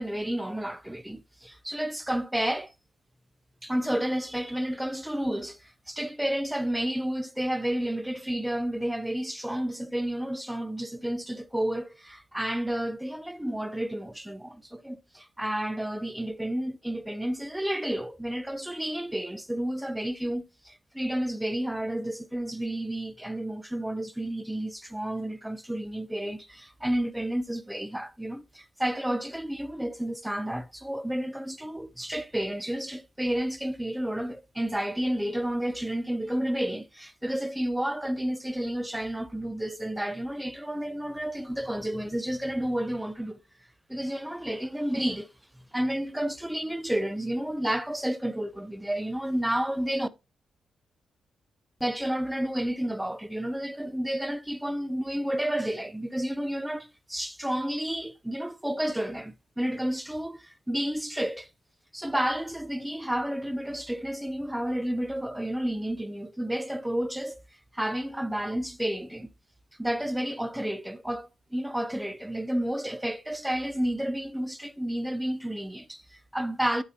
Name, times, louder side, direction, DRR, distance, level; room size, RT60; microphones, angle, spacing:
voice 1, 0.0-2.7 3.6-43.4 43.9-45.3 45.7-50.1 51.8-61.5 61.9-67.4 67.7-69.3 69.8-76.8, right 1 dB, 5° right, 0.5 m, -31 dB
11.0 x 4.0 x 2.7 m
cardioid pair, 115°, 0 cm